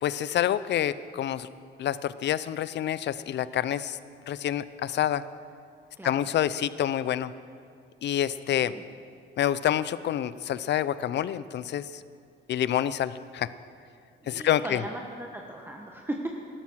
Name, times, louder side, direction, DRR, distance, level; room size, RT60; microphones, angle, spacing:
voice 1, 0.0-1.5 1.8-4.0 4.3-5.2 6.0-7.3 8.0-8.7 9.4-12.0 12.5-13.5 14.3-14.8, left 11 dB, 60° left, 16 dB, 0.5 m, -27 dB
voice 2, 8.5-8.9 14.2-16.3, right 1 dB, 10° right, 0 dB, 1.2 m, -37 dB
14.0 x 12.0 x 6.2 m, 2.4 s
cardioid pair, 90°, 20 cm